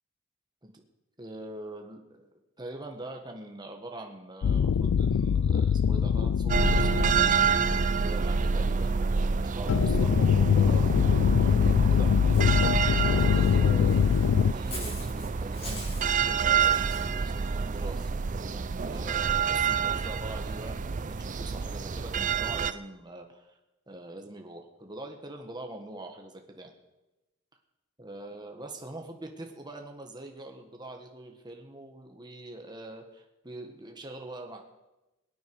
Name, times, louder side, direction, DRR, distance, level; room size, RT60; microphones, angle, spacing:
voice 1, 1.2-2.3 2.6-12.4 12.7-23.6 23.9-26.7 28.0-34.6, right 1 dB, 20° right, 3 dB, 1.5 m, -43 dB
sound 1, 4.4-8.7 9.7-14.5, left 7 dB, 80° left, 0.4 m, -24 dB
sound 2, 6.5-22.7, right 6 dB, 40° right, 0.5 m, -28 dB
Walk footsteps / Bird, 12.3-17.1, left 1 dB, 30° left, 5.0 m, -45 dB
22.5 x 9.2 x 4.8 m, 1.0 s
head